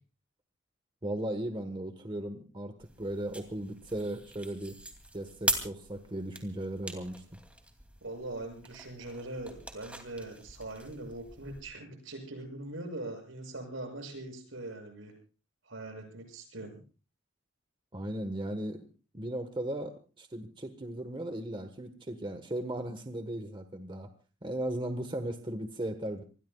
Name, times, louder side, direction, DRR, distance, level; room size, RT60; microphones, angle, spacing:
voice 1, 1.0-4.8 5.1-7.2 17.9-18.8 19.1-24.1 24.4-26.2, right 1 dB, 25° right, 7 dB, 1.3 m, -36 dB
sound 1, 2.8-11.6, right 2 dB, 5° right, 2.7 m, -41 dB
voice 2, 8.0-15.1 15.6-16.7, right 2 dB, 80° right, 3 dB, 7.3 m, -41 dB
27.0 x 21.0 x 2.4 m, 0.35 s
head